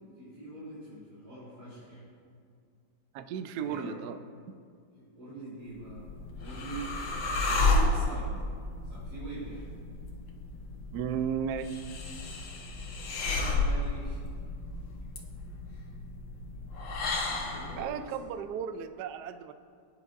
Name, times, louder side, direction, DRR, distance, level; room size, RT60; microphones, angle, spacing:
voice 1, 0.1-2.1 3.6-4.0 4.9-6.9 7.3-8.3 8.8-9.7 13.2-14.2 15.6-15.9 17.2-18.3, right 2 dB, 50° right, -11 dB, 4.1 m, -44 dB
voice 2, 3.1-4.2 4.5-4.6 10.9-11.7 17.8-19.5, right 8 dB, 70° right, 9 dB, 1.0 m, -34 dB
sound 1, 5.8-17.9, left 2 dB, 70° left, 1.9 m, -32 dB
22.0 x 9.9 x 2.6 m, 2.2 s
omnidirectional pair, 2.1 m